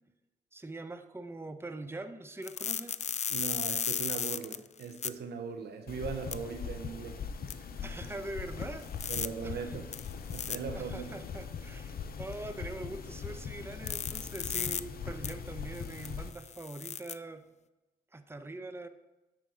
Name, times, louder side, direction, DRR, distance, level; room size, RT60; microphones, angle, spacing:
voice 1, 0.5-2.9 7.8-9.8 10.7-17.4 18.1-18.9, right 2 dB, 15° right, 9 dB, 0.8 m, -43 dB
sound 1, 2.4-5.1 6.3-6.4 7.5-7.6 8.8-9.3 9.9-10.6 13.9-14.8 15.2-15.3 15.7-17.1, left 7 dB, 40° left, 0.4 m, -35 dB
voice 2, 3.3-7.2 7.6-7.8 9.1-9.9 10.3-11.2, right 6 dB, 65° right, 6 dB, 0.9 m, -39 dB
sound 2, 5.9-16.3, left 6 dB, 55° left, 0.8 m, -41 dB
12.0 x 4.5 x 3.8 m, 1.0 s
hypercardioid pair, 40°, 18 cm